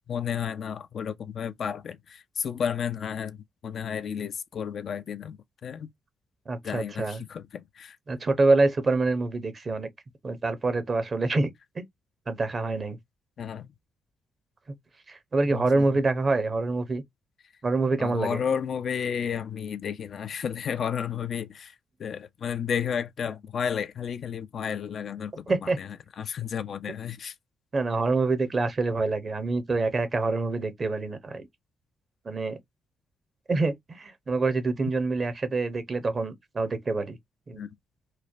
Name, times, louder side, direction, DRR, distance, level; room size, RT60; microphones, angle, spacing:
voice 1, 0.1-3.4 3.6-5.9 6.6-8.0 13.4-13.7 15.5-16.0 18.0-21.7 22.0-27.3 37.6-37.7, left 7 dB, 55° left, 0.3 m, -32 dB
voice 2, 6.5-7.2 8.1-9.9 10.2-11.5 11.8-11.9 12.3-13.0 15.1-17.0 17.6-18.4 25.5-25.8 27.7-31.4 32.2-32.6 33.5-37.2 37.5-37.6, right 3 dB, 40° right, 0.8 m, -26 dB
3.1 x 2.1 x 2.5 m
hypercardioid pair, 40°, 0 cm